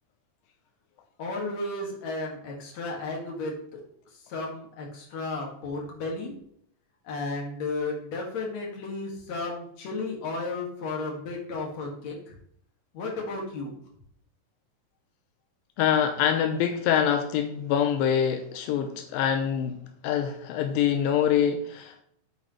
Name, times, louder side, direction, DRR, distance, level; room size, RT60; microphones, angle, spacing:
voice 1, 1.2-3.8 4.3-6.3 7.0-12.4 12.9-13.7, left 3 dB, 55° left, -1 dB, 3.4 m, -33 dB
voice 2, 15.8-19.8 20.0-22.0, left 8 dB, 90° left, 6 dB, 2.5 m, -25 dB
8.8 x 8.1 x 3.3 m, 0.66 s
omnidirectional pair, 4.0 m